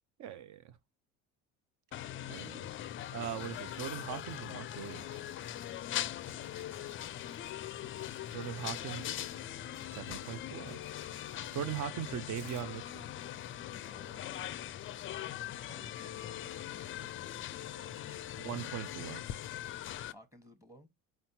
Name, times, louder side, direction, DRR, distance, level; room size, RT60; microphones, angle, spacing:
voice 1, 0.2-0.7 2.3-2.7 3.1-5.2 8.3-9.3 9.8-10.8 11.5-13.0 18.4-19.2, right 9 dB, 50° right, 0.6 m, -40 dB
sound 1, 1.9-20.1, left 12 dB, 35° left, 0.4 m, -41 dB
sound 2, 3.4-4.4 4.8-5.7 6.2-7.5 8.0-9.1 9.8-10.3 10.7-11.8 12.4-12.7, right 4 dB, 85° right, 1.5 m, -61 dB
voice 2, 13.8-14.8 15.3-18.4 20.1-20.9, equal, 10° right, 1.2 m, -59 dB
4.4 x 4.2 x 2.6 m
hypercardioid pair, 80°, 39 cm